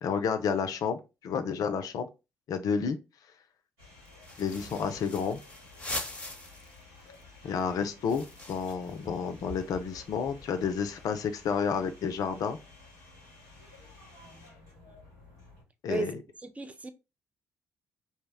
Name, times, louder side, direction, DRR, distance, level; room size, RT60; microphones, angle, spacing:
voice 1, 0.0-2.1 2.5-3.0 4.4-5.4 7.4-12.6 15.8-16.1, left 6 dB, 60° left, 0.4 m, -30 dB
sound 1, 3.8-15.6, left 2 dB, 85° right, 1.5 m, -53 dB
sound 2, 4.1-6.8 7.1-7.2 7.5-10.6, left 1 dB, 15° left, 0.7 m, -42 dB
voice 2, 15.9-16.9, right 3 dB, 20° right, 0.4 m, -35 dB
2.7 x 2.0 x 3.4 m
hypercardioid pair, 45°, 7 cm